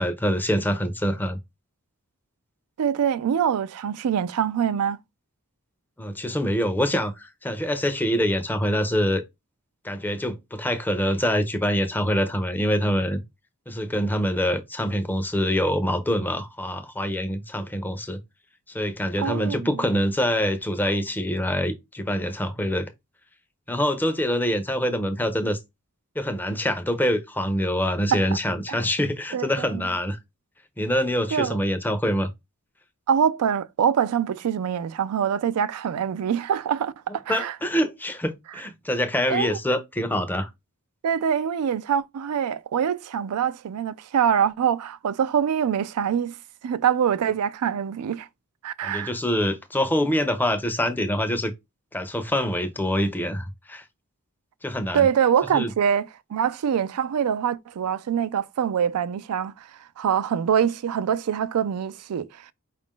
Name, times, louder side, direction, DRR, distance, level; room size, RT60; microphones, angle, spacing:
voice 1, 0.0-1.4 6.0-9.2 9.8-13.2 13.7-18.2 18.7-22.9 23.7-25.6 26.2-30.2 30.8-32.3 37.3-40.5 48.8-51.5 51.9-53.8 54.6-55.1 55.5-55.7, equal, 10° left, 0.5 m, -25 dB
voice 2, 2.8-5.0 19.2-19.7 28.1-28.2 28.7-28.8 29.3-29.9 31.3-31.6 33.1-37.6 39.3-39.6 41.0-46.4 46.6-48.3 48.6-49.1 54.9-59.7 60.0-62.5, right 8 dB, 85° right, 0.4 m, -24 dB
4.8 x 2.4 x 3.6 m
head